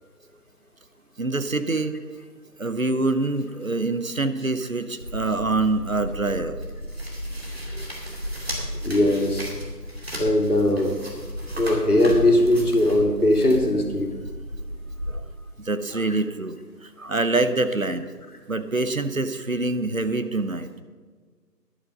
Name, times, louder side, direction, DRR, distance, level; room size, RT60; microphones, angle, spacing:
voice 1, 1.2-2.0 2.6-6.6 15.1-15.2 15.6-18.1 18.5-20.7, right 2 dB, 55° right, 10 dB, 0.8 m, -25 dB
sound 1, 5.0-15.1, equal, 40° right, 2.5 m, -34 dB
voice 2, 8.8-9.5 10.2-10.9 11.6-14.1, left 1 dB, 65° left, 4 dB, 2.3 m, -20 dB
11.0 x 9.7 x 5.4 m, 1.5 s
figure-of-eight pair, 175°, 49 cm